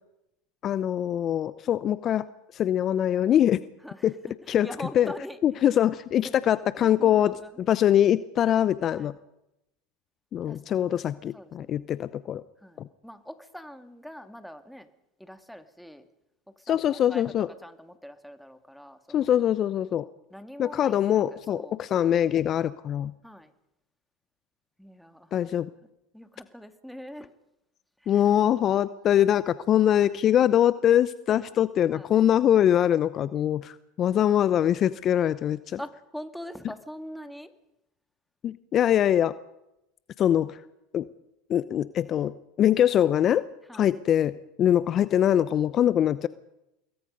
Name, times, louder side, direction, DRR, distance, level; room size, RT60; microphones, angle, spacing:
voice 1, 0.6-2.2 2.5-3.6 4.0-4.2 4.5-4.7 4.9-5.1 5.4-9.1 10.3-12.4 12.8-12.9 16.7-17.5 19.1-20.1 20.6-23.1 25.3-25.7 28.1-35.8 38.4-39.3 40.2-40.6 40.9-41.1 41.5-43.4 43.7-46.3, left 10 dB, 40° left, 16 dB, 0.7 m, -23 dB
voice 2, 3.8-5.8 6.2-6.4 6.8-7.5 8.9-9.1 10.5-11.7 12.6-14.9 15.2-16.0 16.5-19.3 20.3-21.8 23.2-23.5 24.8-25.4 26.1-27.3 28.0-28.2 31.3-31.6 31.9-32.1 35.8-37.5 43.7-43.9, equal, ahead, 9 dB, 2.0 m, -43 dB
26.5 x 21.0 x 5.4 m, 0.88 s
hypercardioid pair, 90°, 0 cm